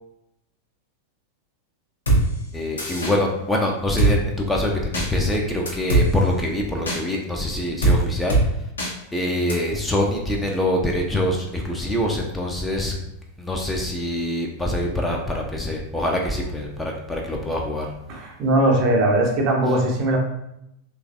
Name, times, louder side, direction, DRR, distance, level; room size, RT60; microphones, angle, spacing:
Drum kit, 2.1-2.2 2.8-3.1 4.0-4.1 4.9-5.1 5.7-6.0 6.9-7.0 7.8-8.0 8.3-8.4 8.8-8.9 9.5-9.6, right 2 dB, 70° left, 0.7 m, -19 dB
voice 1, 2.5-8.4 9.1-12.9 13.4-17.9, left 1 dB, 5° left, -1 dB, 0.4 m, -24 dB
voice 2, 18.1-20.2, right 1 dB, 40° right, 1 dB, 0.6 m, -20 dB
3.0 x 2.3 x 2.4 m, 0.82 s
figure-of-eight pair, 90°, 0 cm